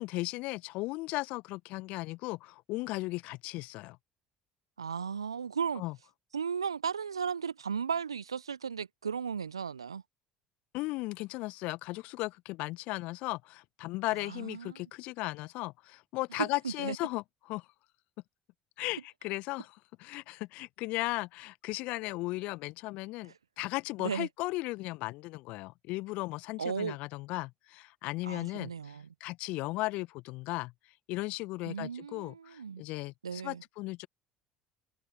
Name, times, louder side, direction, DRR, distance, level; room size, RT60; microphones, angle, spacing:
voice 1, 0.0-4.0 5.7-5.9 10.7-17.7 18.8-30.7 31.1-34.1, left 21 dB, 60° left, 1.5 m, -36 dB
voice 2, 4.8-5.8 6.3-10.0 14.2-14.8 16.4-17.0 24.0-24.3 26.6-27.0 28.2-29.1 31.7-32.8 33.2-33.6, right 6 dB, 80° right, 1.2 m, -35 dB
figure-of-eight pair, 60°, 3 cm